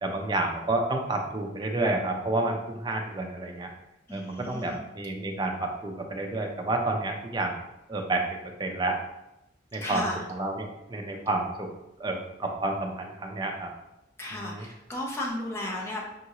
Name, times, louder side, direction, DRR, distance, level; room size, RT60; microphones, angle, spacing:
voice 1, 0.0-3.7 4.1-7.6 7.9-8.3 8.6-9.0 9.7-10.0 10.3-11.7 12.0-13.7 14.4-14.6, right 2 dB, 25° right, 2 dB, 0.5 m, -30 dB
voice 2, 4.1-4.8 9.8-10.2 14.2-16.1, left 1 dB, 15° left, -3 dB, 0.8 m, -34 dB
5.3 x 2.6 x 2.9 m, 0.89 s
head